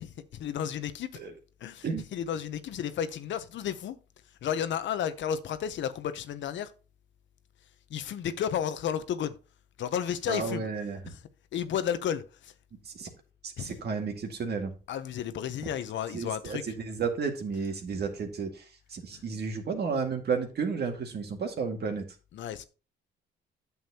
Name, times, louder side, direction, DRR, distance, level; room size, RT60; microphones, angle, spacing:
voice 1, 0.0-1.2 1.6-4.0 4.4-6.7 7.9-9.4 9.8-10.7 11.1-11.2 11.5-12.5 13.6-13.8 14.9-16.6 19.1-19.2 22.3-22.7, left 9 dB, 70° left, 0.8 m, -32 dB
voice 2, 10.3-11.0 12.8-13.1 13.4-14.7 16.1-18.6 18.9-22.0, right 5 dB, 55° right, 2.0 m, -32 dB
9.1 x 7.2 x 2.9 m
cardioid pair, 90°, 20 cm